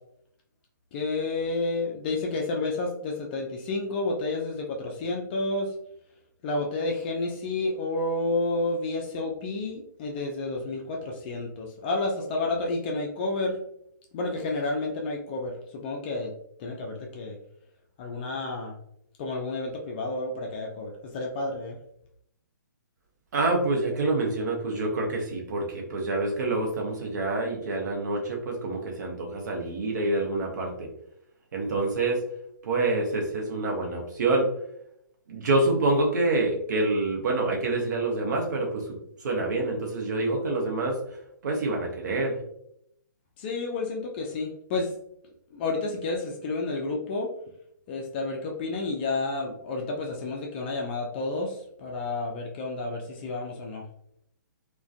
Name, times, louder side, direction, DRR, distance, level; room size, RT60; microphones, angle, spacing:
voice 1, 0.9-5.7 6.4-13.6 14.1-16.3 16.6-17.4 18.0-18.8 19.2-21.8 43.4-44.9 45.5-47.3 47.9-53.9, left 2 dB, 30° left, 0 dB, 0.4 m, -30 dB
voice 2, 23.3-30.9 31.5-32.2 32.6-34.5 35.3-39.0 39.2-41.0 41.4-42.4, right 2 dB, 60° right, 0 dB, 0.7 m, -27 dB
2.4 x 2.2 x 2.4 m, 0.74 s
hypercardioid pair, 135°, 11 cm